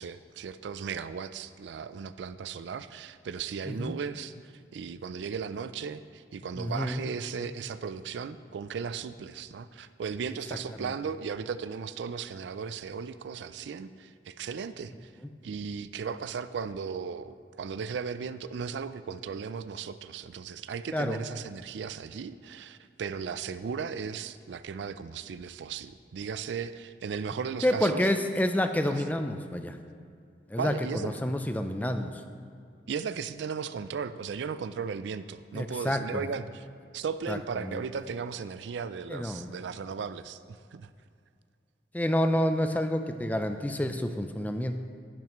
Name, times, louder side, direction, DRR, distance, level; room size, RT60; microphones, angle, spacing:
voice 1, 0.0-15.1 15.4-28.1 30.6-31.1 32.9-36.6 36.9-40.9, right 6 dB, 75° right, 13 dB, 0.4 m, -36 dB
voice 2, 6.6-7.0 10.8-10.9 20.9-21.2 27.6-29.8 30.5-32.2 35.5-36.3 37.3-37.8 39.1-39.5 41.9-44.7, left 1 dB, 10° left, 7 dB, 0.4 m, -29 dB
10.5 x 10.5 x 3.0 m, 2.3 s
head